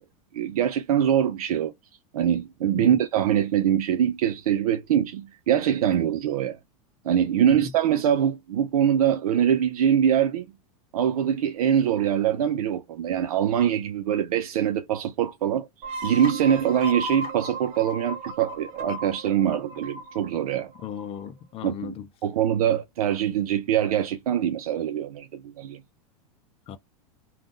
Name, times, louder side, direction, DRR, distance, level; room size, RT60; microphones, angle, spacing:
voice 1, 0.3-1.7 2.1-6.6 7.0-10.5 10.9-15.7 16.0-20.7 21.6-21.9 22.2-25.8, right 9 dB, 85° right, 0.5 m, -23 dB
sound 1, 15.8-21.3, right 1 dB, 60° right, 1.2 m, -36 dB
voice 2, 20.8-22.1 26.7-26.8, left 8 dB, 30° left, 0.5 m, -36 dB
3.5 x 2.4 x 2.5 m
hypercardioid pair, 115°, 18 cm